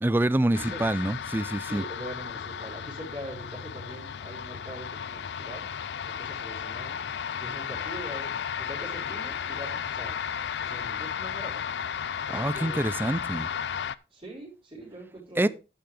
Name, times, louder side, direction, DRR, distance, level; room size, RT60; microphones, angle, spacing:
voice 1, 0.0-1.8 12.3-13.5 15.4-15.5, right 1 dB, 10° right, 0.4 m, -26 dB
sound 1, 0.5-13.9, left 7 dB, 75° left, 0.4 m, -34 dB
voice 2, 1.6-5.7 6.0-7.0 7.4-10.2 10.6-11.6 12.3-13.1 14.1-15.5, right 1 dB, 30° right, 4.5 m, -43 dB
10.0 x 9.1 x 3.4 m
head